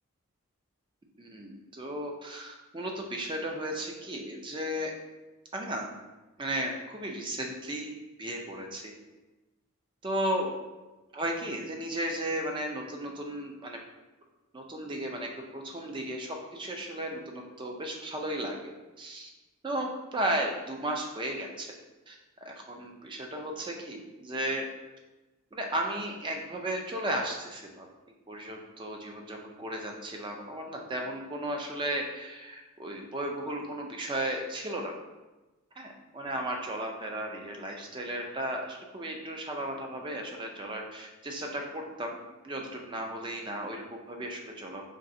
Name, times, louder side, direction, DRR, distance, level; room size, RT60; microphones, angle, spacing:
voice 1, 1.2-4.9 5.5-5.9 6.4-8.9 10.0-10.5 11.1-13.8 14.5-18.7 19.0-19.3 19.6-21.7 22.1-22.2 22.4-24.7 25.5-27.9 28.3-34.9 35.8-42.1 42.4-44.8, right 1 dB, 20° right, 2 dB, 0.4 m, -35 dB
3.9 x 3.1 x 2.6 m, 1.1 s
head